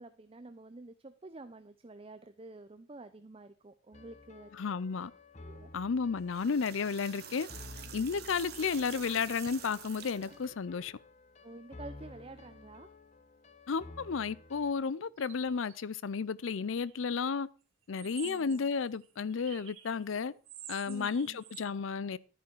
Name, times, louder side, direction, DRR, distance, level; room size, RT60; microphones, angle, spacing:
voice 1, 0.0-4.5 5.4-5.7 11.4-12.9 18.2-18.7 20.9-21.4, right 2 dB, 30° right, 0.6 m, -49 dB
sound 1, 3.9-14.7, left 2 dB, 35° left, 1.0 m, -52 dB
voice 2, 4.6-5.1 5.7-7.5 7.9-10.9 13.7-17.5 17.9-20.3 20.7-22.2, left 5 dB, 80° left, 0.5 m, -33 dB
sound 2, 6.2-10.5, right 9 dB, 55° right, 1.3 m, -48 dB
sound 3, 15.1-15.8 16.8-17.1 18.0-20.1 20.5-21.7, right 10 dB, 80° right, 1.9 m, -50 dB
12.0 x 10.0 x 4.5 m
head